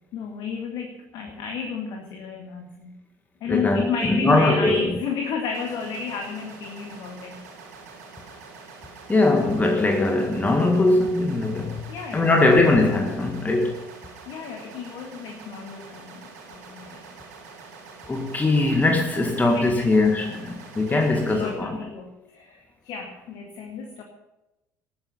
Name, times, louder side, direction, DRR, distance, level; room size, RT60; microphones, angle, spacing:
voice 1, 0.1-3.0 3.4-7.4 11.9-12.6 14.3-16.2 16.5-17.1 19.2-19.5 20.2-20.4 20.9-24.0, left 6 dB, 50° left, 2.1 m, -32 dB
voice 2, 3.5-4.9 9.1-13.8 18.1-21.8, left 2 dB, 20° left, 1.9 m, -21 dB
sound 1, 5.5-21.5, right 4 dB, 70° right, 4.3 m, -45 dB
19.5 x 9.4 x 5.5 m
figure-of-eight pair, 60°, 9 cm